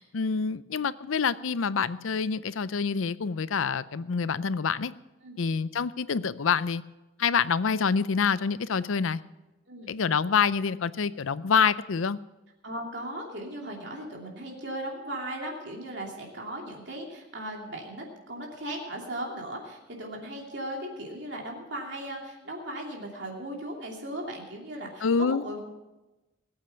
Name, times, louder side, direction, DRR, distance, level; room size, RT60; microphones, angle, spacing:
voice 1, 0.0-4.9 5.4-6.8 7.2-9.2 9.9-12.2 25.0-25.4, left 6 dB, 90° left, 16 dB, 0.5 m, -26 dB
voice 2, 12.6-25.7, right 1 dB, 60° right, -1 dB, 2.8 m, -37 dB
19.5 x 8.8 x 5.8 m, 1.1 s
head